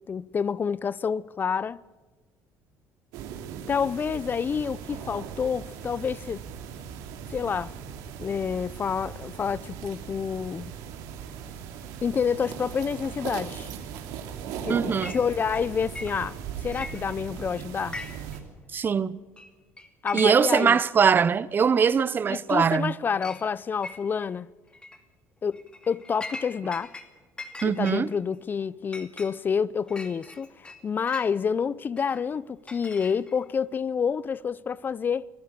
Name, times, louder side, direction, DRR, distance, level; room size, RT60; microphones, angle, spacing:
voice 1, 0.0-1.8 3.7-6.4 7.3-7.7 8.2-10.7 12.0-13.7 14.6-18.0 20.0-20.8 22.3-24.5 25.4-26.9 27.6-35.3, left 6 dB, 30° left, 0.5 m, -28 dB
sound 1, 3.1-18.4, right 7 dB, 85° right, 3.1 m, -38 dB
voice 2, 14.7-15.1 18.7-19.2 20.1-23.0 27.6-28.1, right 6 dB, 35° right, 0.8 m, -22 dB
Chink clink, 15.0-15.2 15.5-16.4 16.7-17.4 17.8-18.4 18.6-18.7 19.4-19.5 19.8-20.6 21.0-21.1 22.0-22.1 22.5-22.8 23.2-23.4 23.8-24.3 24.7-25.0 25.5-27.1 27.4-31.3 32.0-33.5, left 2 dB, 15° left, 2.3 m, -41 dB
25.0 x 15.5 x 7.0 m
cardioid pair, 110°, 6 cm